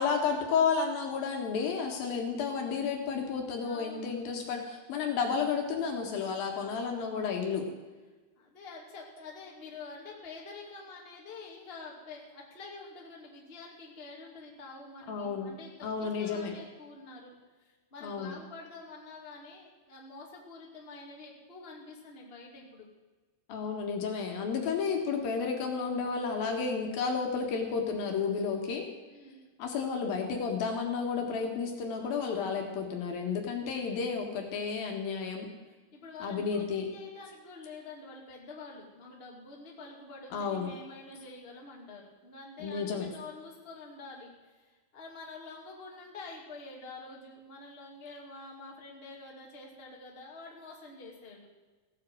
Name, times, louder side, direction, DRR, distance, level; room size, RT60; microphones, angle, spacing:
voice 1, 0.0-7.6 15.1-15.5 15.8-16.5 18.0-18.4 23.5-28.9 29.6-35.5 36.2-36.9 40.3-40.7 42.6-43.1, left 5 dB, 65° left, 2 dB, 3.3 m, -32 dB
voice 2, 3.6-4.1 6.6-6.8 7.5-7.7 8.4-22.9 29.0-29.4 35.6-51.5, left 3 dB, 20° left, -1 dB, 1.9 m, -47 dB
16.0 x 8.6 x 7.7 m, 1.3 s
omnidirectional pair, 4.6 m